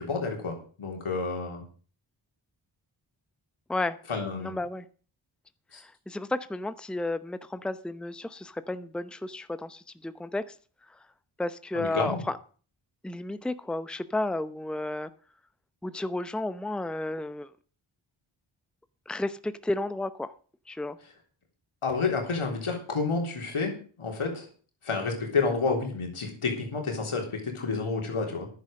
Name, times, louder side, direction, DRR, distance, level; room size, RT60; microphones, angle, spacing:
voice 1, 0.0-1.6 4.1-4.5 5.7-5.8 11.7-12.2 21.8-24.5 24.8-28.5, left 4 dB, 85° left, 2 dB, 3.6 m, -30 dB
voice 2, 4.4-4.9 5.7-10.6 10.9-11.0 11.4-12.4 13.0-15.1 15.8-17.5 19.1-20.3 20.7-21.0, left 2 dB, ahead, 13 dB, 0.8 m, -32 dB
10.5 x 9.7 x 6.5 m, 0.41 s
cardioid pair, 40°, 49 cm